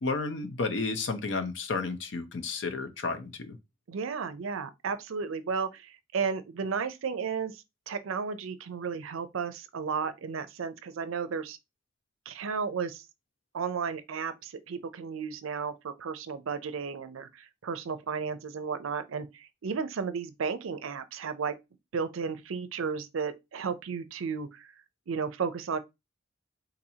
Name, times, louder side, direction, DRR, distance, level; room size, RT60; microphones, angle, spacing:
voice 1, 0.0-3.6, left 3 dB, 65° left, 0.6 m, -32 dB
voice 2, 3.9-11.6 12.3-13.0 13.5-21.5 21.9-24.7 25.1-25.8, right 5 dB, 85° right, 0.5 m, -33 dB
4.1 x 2.6 x 2.7 m
head